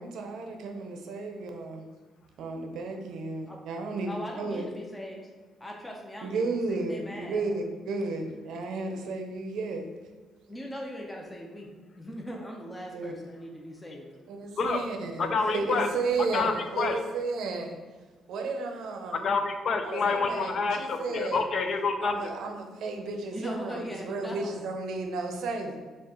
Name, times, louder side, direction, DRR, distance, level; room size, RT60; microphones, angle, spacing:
voice 1, 0.0-1.8 2.4-4.7 6.2-9.9 12.9-13.1 14.3-17.8 18.3-19.3 19.8-21.5 22.0-25.8, right 3 dB, 75° right, 4 dB, 0.6 m, -33 dB
voice 2, 4.1-5.2 5.6-7.4 10.5-11.7 12.0-14.1 23.3-24.6, equal, 10° left, -1 dB, 0.6 m, -40 dB
voice 3, 15.2-15.9 16.2-17.0 19.1-22.1, left 4 dB, 55° left, 6 dB, 0.4 m, -28 dB
4.6 x 2.4 x 3.7 m, 1.3 s
cardioid pair, 90°, 0 cm